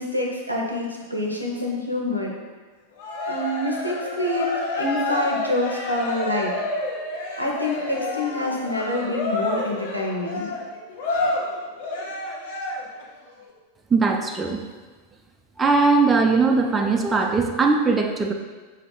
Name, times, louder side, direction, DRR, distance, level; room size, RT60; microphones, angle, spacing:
voice 1, 0.0-2.3 3.3-6.5 7.4-10.5, left 1 dB, 85° right, 0 dB, 0.7 m, -27 dB
Cheering, 3.0-13.0, left 2 dB, 55° left, 0.7 m, -29 dB
voice 2, 13.9-14.6 15.6-18.3, right 4 dB, 15° right, 2 dB, 0.4 m, -20 dB
4.7 x 2.9 x 3.7 m, 1.3 s
figure-of-eight pair, 90°, 0 cm